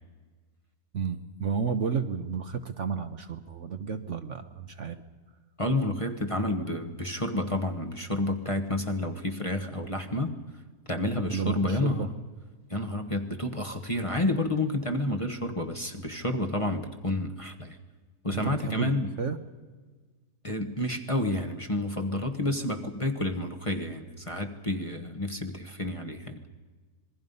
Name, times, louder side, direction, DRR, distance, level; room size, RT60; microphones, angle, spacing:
voice 1, 0.9-5.0 11.2-12.1 18.3-19.4, right 6 dB, 55° right, 9 dB, 1.2 m, -32 dB
voice 2, 5.6-10.4 10.9-12.1 12.7-17.8 18.2-19.1 20.4-26.4, left 1 dB, 20° left, 3 dB, 1.3 m, -30 dB
27.0 x 21.5 x 5.5 m, 1.4 s
omnidirectional pair, 1.7 m